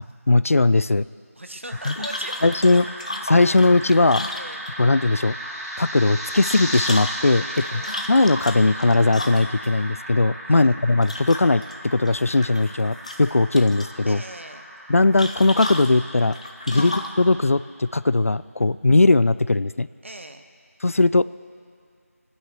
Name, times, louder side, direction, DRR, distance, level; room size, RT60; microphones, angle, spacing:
voice 1, 0.3-1.1 1.9-2.0 2.4-2.9 3.3-4.3 4.8-5.3 5.8-7.4 7.7-7.8 8.1-14.2 14.9-16.4 16.7-19.9 20.8-21.2, left 2 dB, 65° left, 18 dB, 0.3 m, -19 dB
voice 2, 1.3-2.6 3.4-3.6 4.3-4.6 7.4-8.0 10.4-10.7 14.1-14.7 16.7-17.0 20.0-20.5, right 1 dB, 50° right, 6 dB, 1.1 m, -40 dB
sound 1, 1.7-17.0, equal, 75° right, 5.4 m, -36 dB
sound 2, 1.8-5.0 6.2-9.7 11.0-11.7 12.1-12.8 13.0-13.9 15.2-17.2, left 1 dB, 25° left, 0.7 m, -33 dB
21.0 x 9.6 x 6.6 m, 2.3 s
figure-of-eight pair, 175°, 8 cm